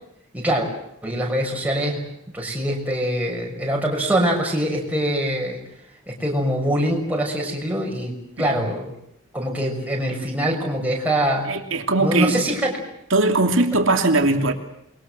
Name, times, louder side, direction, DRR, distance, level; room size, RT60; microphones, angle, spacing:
voice 1, 0.3-0.7 1.0-2.1 2.3-5.6 6.1-8.9 9.3-11.5 12.0-12.8, right 1 dB, 5° right, -1 dB, 6.4 m, -23 dB
voice 2, 11.4-12.6 13.1-14.5, right 2 dB, 60° right, 5 dB, 2.9 m, -20 dB
28.0 x 22.5 x 7.8 m, 0.76 s
head